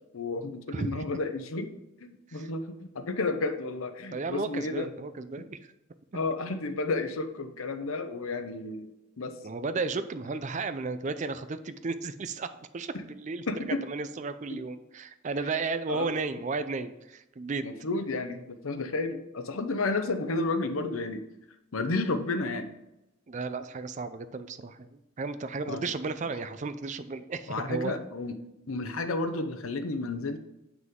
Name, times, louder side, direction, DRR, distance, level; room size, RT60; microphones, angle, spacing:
voice 1, 0.1-1.7 2.0-4.9 6.1-9.4 13.5-13.8 14.5-14.6 15.9-16.1 17.6-21.2 21.7-22.7 25.7-25.8 27.5-28.4 28.7-30.4, left 3 dB, 85° left, 8 dB, 0.8 m, -32 dB
voice 2, 0.7-1.1 2.3-2.5 4.1-5.6 9.4-12.5 12.7-13.4 13.8-17.6 23.3-28.0, right 4 dB, 35° right, 11 dB, 0.4 m, -34 dB
7.7 x 6.0 x 3.7 m, 0.91 s
head